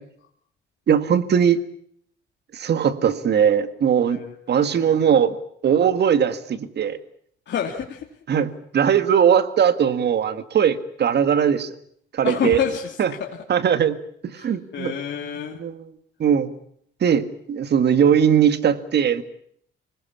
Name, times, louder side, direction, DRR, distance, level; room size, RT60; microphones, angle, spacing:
voice 1, 0.9-1.6 2.5-4.2 4.5-5.4 5.6-7.0 8.3-11.7 12.1-12.6 13.0-13.1 13.5-14.0 14.3-14.9 15.6-15.9 16.2-16.5 17.0-19.2, right 8 dB, 60° right, 12 dB, 1.9 m, -19 dB
voice 2, 4.1-5.0 7.5-8.1 12.2-13.4 14.4-15.6, left 8 dB, 65° left, 0 dB, 3.0 m, -29 dB
25.5 x 20.0 x 8.6 m, 0.65 s
cardioid pair, 90°, 20 cm